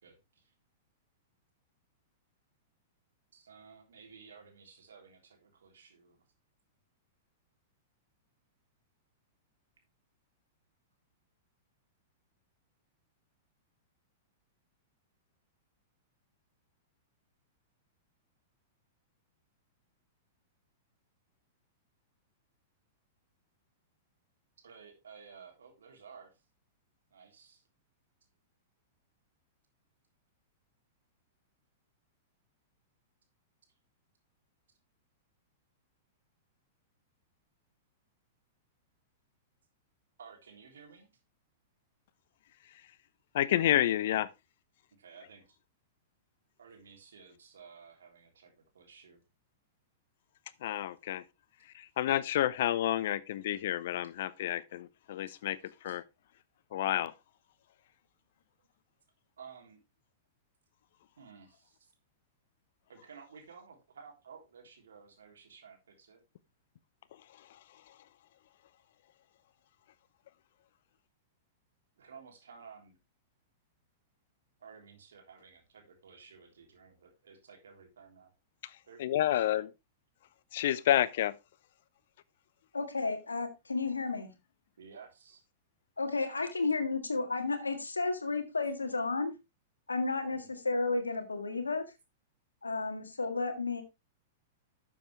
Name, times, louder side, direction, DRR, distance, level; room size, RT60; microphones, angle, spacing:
voice 1, 0.0-0.5 3.3-6.2 24.6-26.4 27.1-27.6 40.2-41.1 45.0-45.6 46.6-49.2 55.3-55.4 55.8-56.0 59.4-59.8 61.2-61.9 62.9-66.2 72.0-73.0 74.6-78.3 78.9-79.0 79.3-79.6 84.8-85.4 90.3-90.5, right 6 dB, 75° right, 3.4 m, -54 dB
voice 2, 43.3-44.3 50.6-51.2 51.6-56.0 56.7-57.1 67.3-68.0 78.6-79.7 80.5-81.3, left 12 dB, 60° left, 0.7 m, -30 dB
voice 3, 82.7-84.3 86.0-89.3 89.9-91.9 92.6-93.8, left 3 dB, 90° left, 1.8 m, -32 dB
12.0 x 7.2 x 3.2 m
figure-of-eight pair, 105°, 0 cm